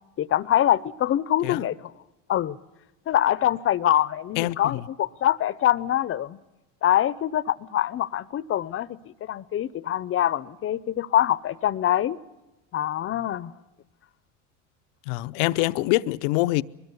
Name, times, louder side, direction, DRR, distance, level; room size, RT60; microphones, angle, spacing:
voice 1, 0.2-1.8 2.3-2.6 3.1-6.4 6.8-12.2 12.7-13.5, left 11 dB, 35° left, 0.8 m, -24 dB
voice 2, 4.4-4.8 15.1-16.6, left 19 dB, 75° left, 0.8 m, -25 dB
23.0 x 21.0 x 8.2 m
supercardioid pair, 100°, 37 cm